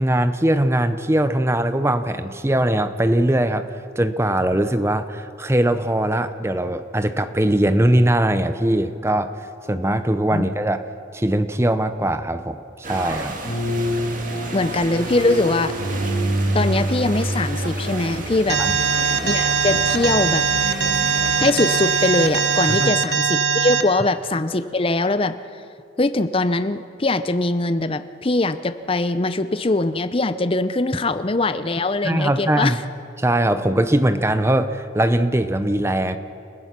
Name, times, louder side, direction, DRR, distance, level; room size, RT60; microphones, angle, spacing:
voice 1, 0.0-3.7 4.0-10.8 11.1-13.3 18.6-18.8 22.7-22.9 32.0-32.8 33.2-36.2, right 1 dB, 15° right, 10 dB, 0.7 m, -21 dB
sound 1, 12.8-22.9, right 2 dB, 45° right, 2.1 m, -33 dB
sound 2, 13.4-21.4, right 1 dB, 50° left, 4.0 m, -27 dB
voice 2, 14.5-15.7 16.5-18.6 19.2-20.5 21.4-25.4 26.0-32.8, left 2 dB, 30° left, 12 dB, 0.6 m, -22 dB
Alarm, 18.5-23.8, right 6 dB, 65° right, 1.1 m, -21 dB
30.0 x 15.5 x 6.0 m, 2.5 s
head